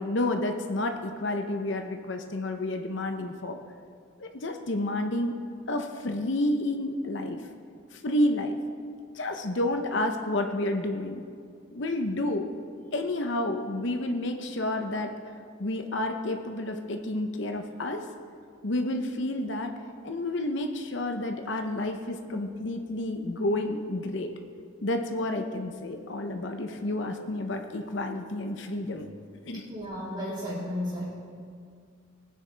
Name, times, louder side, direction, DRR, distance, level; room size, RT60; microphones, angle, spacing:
voice 1, 0.0-3.6 4.2-5.3 5.7-7.4 7.9-8.6 9.1-11.2 11.7-12.5 12.9-15.1 15.6-18.0 18.6-19.7 20.0-24.3 24.8-29.1 29.4-29.6, left 1 dB, 60° left, 5 dB, 0.8 m, -30 dB
voice 2, 29.7-31.1, left 1 dB, 25° right, -10 dB, 2.7 m, -33 dB
20.0 x 9.4 x 3.4 m, 2.2 s
head